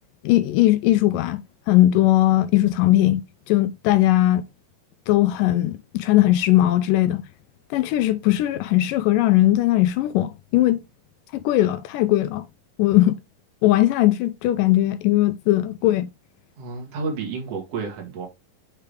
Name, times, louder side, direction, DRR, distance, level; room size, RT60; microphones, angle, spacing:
voice 1, 0.2-1.4 1.7-3.2 3.5-4.4 5.1-7.2 7.7-10.8 11.3-12.5 12.8-13.2 13.6-16.1, left 15 dB, 80° left, 2.1 m, -19 dB
voice 2, 16.6-18.3, right 4 dB, 50° right, 2.8 m, -30 dB
6.7 x 3.6 x 4.8 m
omnidirectional pair, 4.0 m